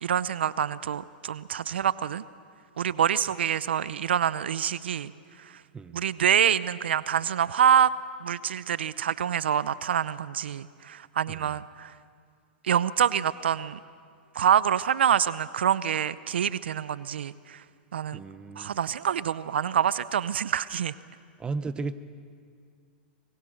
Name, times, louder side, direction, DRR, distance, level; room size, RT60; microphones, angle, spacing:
voice 1, 0.0-2.2 2.8-5.1 5.4-5.6 5.9-7.9 8.2-11.9 12.6-13.8 14.3-17.6 17.9-18.2 18.6-20.9, right 9 dB, 85° right, 17 dB, 0.6 m, -26 dB
voice 2, 18.1-18.8 21.4-21.9, right 4 dB, 15° right, 12 dB, 0.9 m, -35 dB
24.5 x 22.0 x 6.5 m, 2.1 s
hypercardioid pair, 120°, 6 cm